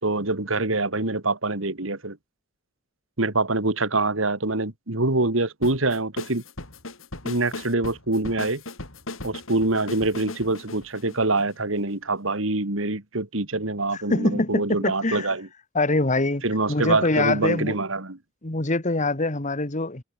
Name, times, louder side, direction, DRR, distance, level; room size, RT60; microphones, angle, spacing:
voice 1, 0.0-2.2 3.2-6.4 7.2-8.6 9.2-15.5 16.4-18.2, right 2 dB, 75° right, 2.6 m, -25 dB
sound 1, 5.6-11.9, left 2 dB, 75° left, 5.8 m, -38 dB
voice 2, 14.1-15.3 15.8-17.8 18.4-20.0, left 2 dB, 35° left, 1.8 m, -24 dB
open air
head